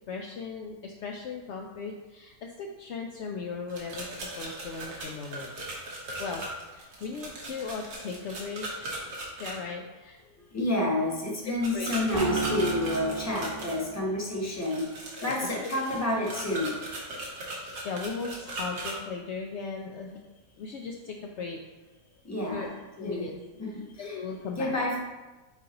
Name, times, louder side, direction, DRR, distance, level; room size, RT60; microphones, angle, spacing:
voice 1, 0.1-4.1 4.4-5.5 5.9-6.4 6.7-8.9 9.4-10.2 11.4-11.9 15.2-15.5 17.8-20.2 20.6-21.6 22.5-22.7 23.0-23.3 24.0-24.7, left 5 dB, 75° left, 1 dB, 0.6 m, -37 dB
sound 1, 3.7-9.5 11.6-13.8 14.6-18.9, right 2 dB, 90° right, 1.9 m, -38 dB
voice 2, 10.5-16.8 22.2-22.7 23.0-23.3 23.6-24.2 24.6-25.0, left 1 dB, 10° left, -3 dB, 0.9 m, -29 dB
sound 2, 12.1-14.5, right 3 dB, 40° right, 0.9 m, -34 dB
9.0 x 3.8 x 2.9 m, 1.2 s
omnidirectional pair, 1.7 m